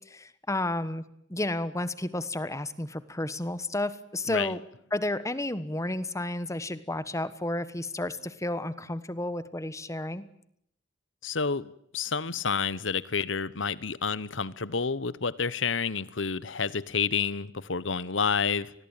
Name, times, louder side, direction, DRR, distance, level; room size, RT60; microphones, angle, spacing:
voice 1, 0.1-1.0 1.3-4.6 4.9-10.2, left 1 dB, 15° left, 15 dB, 1.3 m, -32 dB
voice 2, 4.3-4.6 11.2-18.7, left 5 dB, 80° left, 19 dB, 1.1 m, -29 dB
29.0 x 21.0 x 9.1 m, 0.70 s
head